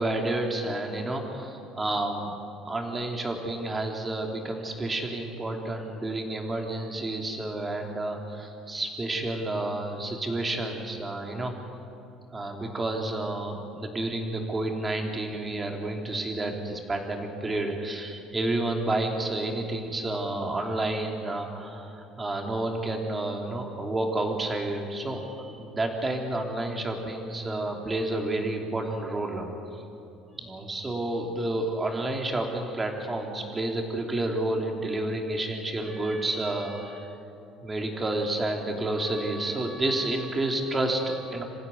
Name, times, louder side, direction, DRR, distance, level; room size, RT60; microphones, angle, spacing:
voice 1, 0.0-2.3 2.6-11.5 12.3-29.5 30.3-37.1 37.6-41.4, right 2 dB, 15° right, 2 dB, 3.2 m, -30 dB
26.5 x 15.5 x 9.4 m, 2.7 s
cardioid pair, 135°, 0 cm